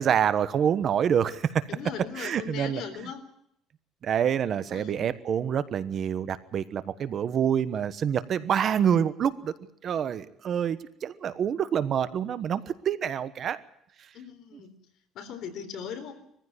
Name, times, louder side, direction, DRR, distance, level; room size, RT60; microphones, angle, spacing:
voice 1, 0.0-1.5 2.1-3.1 4.0-9.5 9.8-13.6 14.0-14.1 14.5-14.6, right 8 dB, 40° right, 14 dB, 1.1 m, -27 dB
voice 2, 1.7-3.2 4.7-5.0 14.1-14.7 15.1-16.1, left 7 dB, 60° left, 6 dB, 4.0 m, -39 dB
22.0 x 15.0 x 9.7 m, 0.73 s
cardioid pair, 145°, 0 cm